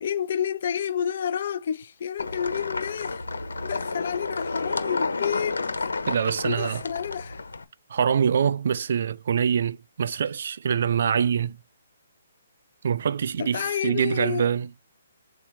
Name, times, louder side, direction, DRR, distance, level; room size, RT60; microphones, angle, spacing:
voice 1, 0.0-3.2 3.6-5.9 6.4-7.4 13.4-14.5, left 8 dB, 55° left, 0.6 m, -30 dB
sound 1, 2.2-7.6, left 3 dB, 90° left, 1.3 m, -31 dB
voice 2, 6.1-6.8 7.9-11.6 12.8-14.7, right 7 dB, 60° right, 0.5 m, -24 dB
7.1 x 3.0 x 5.2 m
hypercardioid pair, 150°, 0 cm